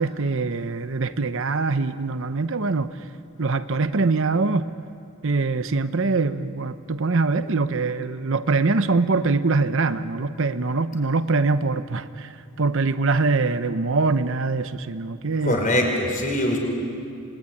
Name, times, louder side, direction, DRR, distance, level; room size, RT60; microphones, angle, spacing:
voice 1, 0.0-2.9 3.4-4.7 5.2-12.3 12.6-15.6, right 3 dB, 60° right, 0.8 m, -23 dB
voice 2, 15.4-16.6, left 1 dB, 35° left, 5.6 m, -22 dB
27.0 x 20.5 x 9.8 m
head